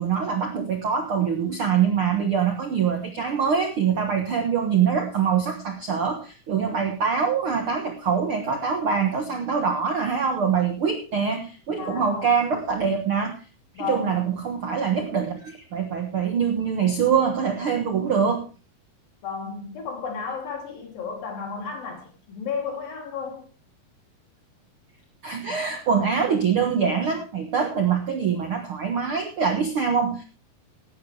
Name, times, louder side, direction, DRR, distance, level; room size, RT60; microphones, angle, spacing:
voice 1, 0.0-13.4 13.8-18.5 25.2-30.2, right 6 dB, 60° right, 1.4 m, -24 dB
voice 2, 11.8-12.3 13.7-14.2 19.2-23.5, left 5 dB, 65° left, 4.8 m, -33 dB
16.5 x 12.5 x 3.3 m
omnidirectional pair, 4.4 m